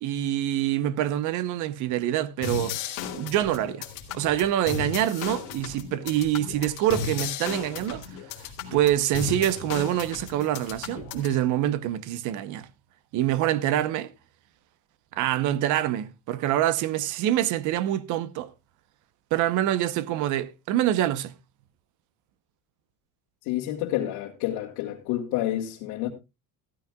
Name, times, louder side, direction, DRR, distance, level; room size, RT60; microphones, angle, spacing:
voice 1, 0.0-2.7 3.1-3.9 4.1-8.1 8.4-12.7 13.1-14.1 15.1-18.5 19.3-21.3, right 12 dB, 50° right, 0.9 m, -26 dB
sound 1, 2.4-11.4, left 6 dB, 55° left, 2.6 m, -35 dB
voice 2, 23.4-26.1, left 13 dB, 90° left, 1.9 m, -29 dB
15.0 x 13.0 x 2.3 m
cardioid pair, 180°, 38 cm